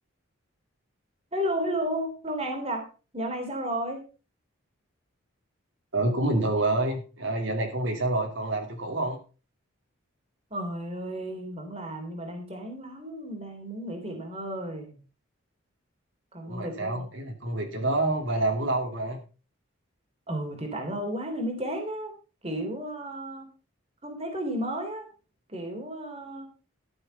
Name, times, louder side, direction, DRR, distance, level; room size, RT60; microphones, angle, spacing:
voice 1, 1.3-2.9 3.1-4.0 10.5-14.9 16.3-17.0 20.3-22.1 22.4-23.5 24.0-25.1 25.5-26.5, right 1 dB, 30° right, 3 dB, 3.2 m, -33 dB
voice 2, 5.9-9.2 16.5-19.2, right 2 dB, 65° right, 2 dB, 2.8 m, -27 dB
13.0 x 7.0 x 5.5 m, 0.34 s
head